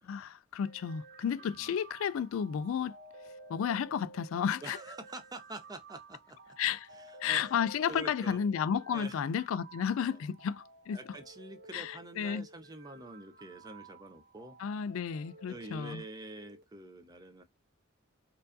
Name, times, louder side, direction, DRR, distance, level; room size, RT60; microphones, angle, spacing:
voice 1, 0.0-3.0 3.5-4.8 6.6-6.9 7.2-11.0 11.7-12.5 14.6-16.0, left 7 dB, 75° left, 0.3 m, -32 dB
sound 1, 0.6-16.6, right 3 dB, 50° right, 1.2 m, -54 dB
voice 2, 4.6-6.4 6.9-7.4 7.9-8.4 8.9-9.2 10.0-10.2 10.9-14.6 15.5-17.4, right 2 dB, 20° right, 0.5 m, -46 dB
4.4 x 2.6 x 2.5 m
head